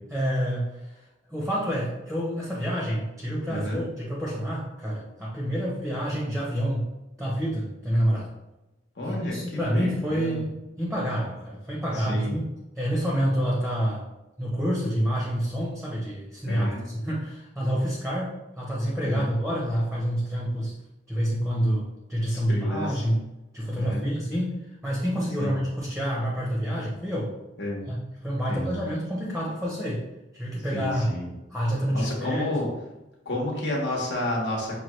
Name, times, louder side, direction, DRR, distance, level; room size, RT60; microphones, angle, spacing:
voice 1, 0.1-1.0 1.3-6.9 7.2-8.3 9.0-12.5 12.8-14.0 14.4-16.7 17.0-20.7 21.1-23.2 23.5-27.3 27.9-30.1 30.3-31.1 31.5-32.6, equal, ahead, -5 dB, 0.7 m, -28 dB
voice 2, 3.5-3.8 9.0-10.4 11.9-12.4 16.5-16.8 19.0-19.3 22.3-23.0 23.8-24.1 25.4-25.6 27.6-27.8 28.5-28.8 30.7-31.3 31.9-32.7 33.2-34.8, left 1 dB, 65° left, -3 dB, 1.2 m, -31 dB
6.0 x 2.4 x 3.1 m, 1.0 s
head